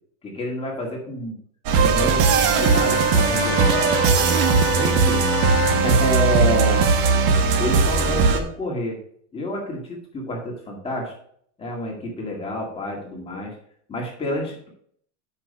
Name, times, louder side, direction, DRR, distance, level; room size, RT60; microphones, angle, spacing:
voice 1, 0.2-1.3 1.8-3.8 4.7-5.3 5.7-6.9 7.6-9.0 9.3-11.1 11.6-13.5 13.9-14.7, left 1 dB, 15° left, -1 dB, 2.0 m, -28 dB
sound 1, 1.7-8.4, right 5 dB, 75° right, 1.3 m, -18 dB
Bowed string instrument, 2.3-6.8, left 7 dB, 45° left, 1.7 m, -31 dB
7.5 x 5.7 x 5.5 m, 0.65 s
supercardioid pair, 155°, 35 cm